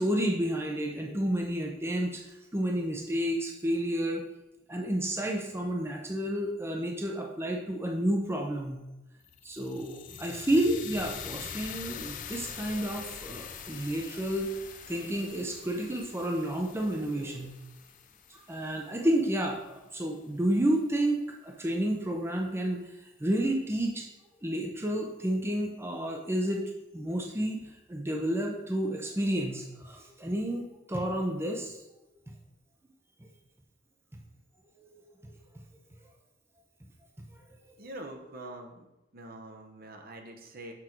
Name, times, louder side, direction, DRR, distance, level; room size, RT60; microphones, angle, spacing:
voice 1, 0.0-2.2 2.5-4.2 4.7-8.8 9.4-14.5 14.9-17.5 18.3-24.0 24.4-31.8 34.8-34.9 35.2-35.3 37.3-37.4, right 1 dB, 15° right, 1 dB, 0.7 m, -30 dB
sound 1, 9.2-19.4, left 8 dB, 45° left, 0.5 m, -44 dB
voice 2, 37.8-38.9 39.1-40.7, right 1 dB, 50° right, 3 dB, 1.0 m, -44 dB
6.3 x 6.1 x 4.4 m, 0.97 s
head